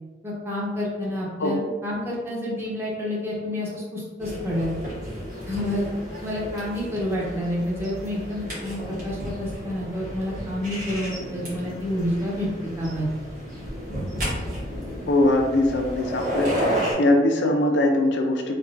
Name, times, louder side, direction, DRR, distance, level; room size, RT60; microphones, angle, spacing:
voice 1, 0.2-4.7 5.5-5.9 6.2-12.5 12.8-13.1, left 1 dB, 15° right, -5 dB, 0.7 m, -29 dB
sound 1, 4.2-16.9, equal, 50° right, 1.2 m, -32 dB
voice 2, 15.1-16.5 16.9-18.5, left 1 dB, 70° left, 3 dB, 0.4 m, -21 dB
3.4 x 2.3 x 2.5 m, 1.3 s
head